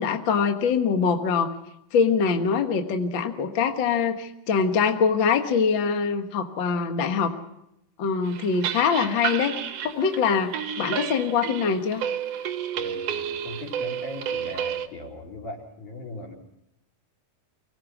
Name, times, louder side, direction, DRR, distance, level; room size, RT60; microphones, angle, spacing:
voice 1, 0.0-1.5 1.9-7.3 8.0-9.5 10.0-12.0, left 6 dB, 80° left, 6 dB, 1.0 m, -23 dB
sound 1, 8.2-14.9, right 8 dB, 65° right, 1.5 m, -31 dB
voice 2, 12.8-16.3, left 1 dB, 55° left, 0 dB, 4.6 m, -39 dB
24.5 x 18.0 x 6.0 m, 0.81 s
omnidirectional pair, 4.3 m